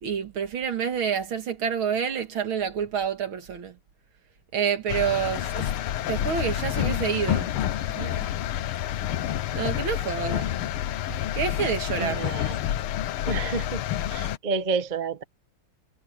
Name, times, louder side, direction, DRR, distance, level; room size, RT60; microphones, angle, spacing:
voice 1, 0.0-3.8 4.5-5.7 6.1-7.5 8.0-8.2 9.5-10.5 11.1-12.2, right 7 dB, 70° right, 2.6 m, -28 dB
sound 1, 4.9-14.4, left 12 dB, 85° left, 1.8 m, -28 dB
voice 2, 12.0-12.6 13.3-13.8 14.1-15.2, right 4 dB, 30° right, 0.8 m, -29 dB
omnidirectional pair, 2.4 m